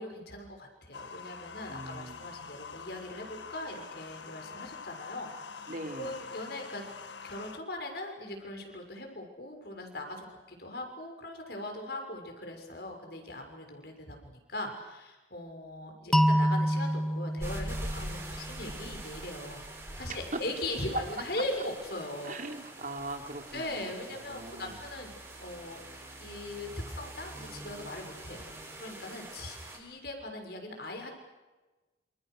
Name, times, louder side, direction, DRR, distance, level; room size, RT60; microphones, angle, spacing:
voice 1, 0.0-6.8 7.2-22.3 23.5-25.8 26.2-28.5 28.8-31.1, left 1 dB, 55° left, 4 dB, 6.4 m, -40 dB
sound 1, 0.9-7.6, left 5 dB, 75° left, 1.6 m, -45 dB
voice 2, 1.7-2.2 5.7-6.2 20.3-20.4 22.2-23.9 24.3-24.8, right 2 dB, 45° right, 5 dB, 3.1 m, -40 dB
sound 2, 16.1-19.0, equal, ahead, 0.9 m, -28 dB
sound 3, 17.4-29.8, right 1 dB, 15° right, 6.8 m, -44 dB
28.5 x 28.5 x 6.6 m, 1.2 s
head